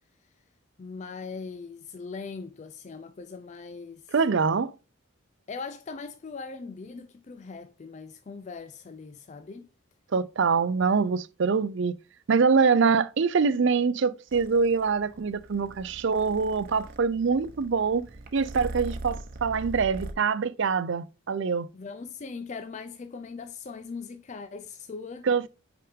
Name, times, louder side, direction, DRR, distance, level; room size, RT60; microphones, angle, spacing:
voice 1, 0.8-4.1 5.5-9.7 21.7-25.5, left 4 dB, 35° left, 0.3 m, -40 dB
voice 2, 4.1-4.7 10.1-11.9 12.3-18.1 18.3-21.7 25.3-25.4, right 5 dB, 60° right, 0.5 m, -24 dB
Purr, 14.3-20.1, right 2 dB, 40° right, 0.9 m, -41 dB
5.7 x 5.0 x 3.5 m
head